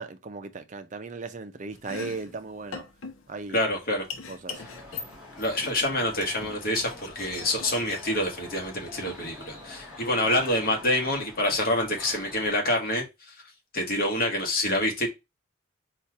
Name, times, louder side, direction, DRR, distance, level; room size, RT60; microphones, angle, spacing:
voice 1, 0.0-2.8 3.3-3.6 4.3-4.6, right 4 dB, 35° right, 0.5 m, -37 dB
Domestic sounds home sounds, 1.7-9.9, left 5 dB, 85° left, 0.8 m, -43 dB
voice 2, 3.5-4.0 5.4-13.0 13.7-15.1, left 1 dB, 45° left, 1.3 m, -26 dB
sound 1, 4.5-12.6, left 2 dB, 5° right, 1.9 m, -46 dB
4.2 x 2.5 x 4.5 m
head